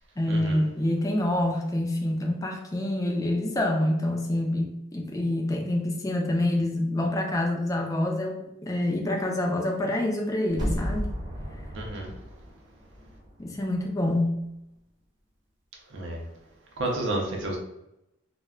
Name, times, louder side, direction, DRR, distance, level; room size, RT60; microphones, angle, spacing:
voice 1, 0.2-11.1 13.4-14.4, left 1 dB, 15° left, 0 dB, 0.4 m, -27 dB
sound 1, 10.5-13.4 13.8-13.9, equal, 20° right, 0.8 m, -33 dB
voice 2, 11.7-12.1 15.9-16.2 16.8-17.6, right 1 dB, 60° right, 0 dB, 0.5 m, -30 dB
2.2 x 2.1 x 3.5 m, 0.85 s
head